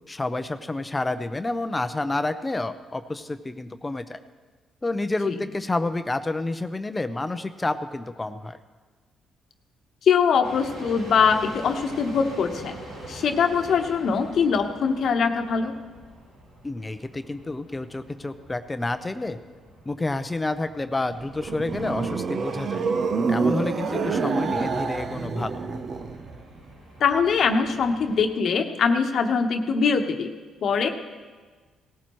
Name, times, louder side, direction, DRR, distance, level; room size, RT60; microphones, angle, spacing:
voice 1, 0.1-4.2 4.8-8.6 16.6-19.4 19.9-22.9 23.3-25.7, left 2 dB, 20° left, 10 dB, 0.6 m, -29 dB
voice 2, 10.0-12.8 13.1-15.7 23.9-24.1 27.0-30.3 30.6-30.9, left 6 dB, 65° left, 5 dB, 1.1 m, -22 dB
sound 1, 10.4-28.2, right 1 dB, 90° right, 4.9 m, -45 dB
sound 2, 21.1-26.4, right 4 dB, 55° right, 0.8 m, -27 dB
18.0 x 14.5 x 3.1 m, 1.4 s
cardioid pair, 90°, 0 cm